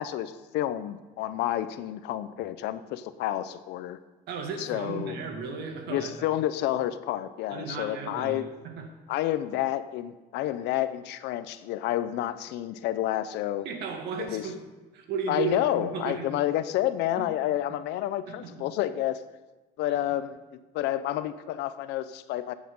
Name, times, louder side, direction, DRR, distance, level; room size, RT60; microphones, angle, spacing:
voice 1, 0.0-4.0 4.6-5.2 5.9-8.4 9.1-13.7 14.2-14.5 15.3-19.2 19.8-20.4 20.7-22.5, left 13 dB, 85° left, 13 dB, 0.7 m, -29 dB
voice 2, 4.3-6.3 7.5-9.0 13.6-14.6 14.9-16.3 18.3-18.7 19.9-20.0, right 5 dB, 80° right, 3 dB, 2.1 m, -35 dB
13.5 x 8.3 x 5.4 m, 1.1 s
cardioid pair, 110°, 17 cm